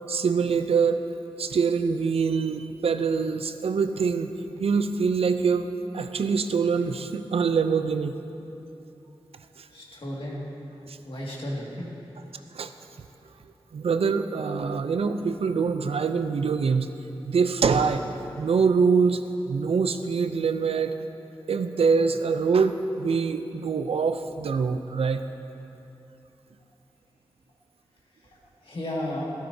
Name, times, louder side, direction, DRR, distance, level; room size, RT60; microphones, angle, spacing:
voice 1, 0.1-1.0 1.4-5.7 5.9-8.2 9.6-9.7 10.9-11.0 12.5-12.7 13.7-16.9 17.2-18.0 18.4-19.2 19.5-21.0 21.5-25.2, right 5 dB, 85° right, 9 dB, 0.5 m, -24 dB
voice 2, 9.7-10.5 11.0-11.9 28.2-29.2, left 1 dB, 65° left, -4 dB, 2.0 m, -34 dB
13.0 x 12.5 x 2.7 m, 2.9 s
wide cardioid pair, 80°, 10 cm